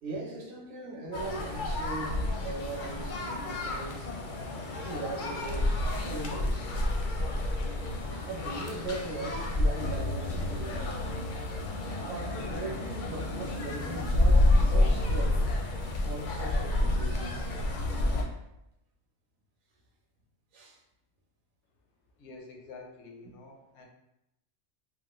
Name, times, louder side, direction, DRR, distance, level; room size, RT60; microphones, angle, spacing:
voice 1, 0.0-4.1 4.8-6.9 8.3-11.0 11.8-15.4 16.0-17.3 20.5-20.8, right 2 dB, 60° right, -2 dB, 0.8 m, -39 dB
sound 1, 1.1-18.2, left 1 dB, 60° left, 0.5 m, -29 dB
voice 2, 22.2-23.9, left 3 dB, 85° left, 2 dB, 0.9 m, -48 dB
3.1 x 2.2 x 2.9 m, 0.86 s
omnidirectional pair, 1.2 m